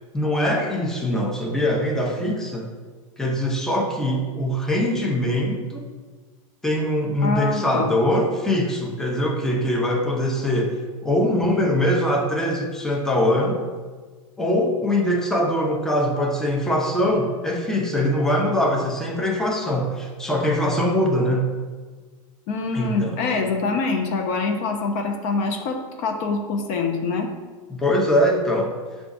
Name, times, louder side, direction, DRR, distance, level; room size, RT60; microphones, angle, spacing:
voice 1, 0.1-2.7 3.2-5.8 6.6-13.6 14.4-21.5 22.7-23.5 27.7-28.7, left 1 dB, 5° left, -1 dB, 0.6 m, -22 dB
voice 2, 7.2-7.9 22.5-27.3, left 4 dB, 50° left, 3 dB, 0.5 m, -25 dB
6.7 x 2.4 x 2.5 m, 1.4 s
hypercardioid pair, 110°, 18 cm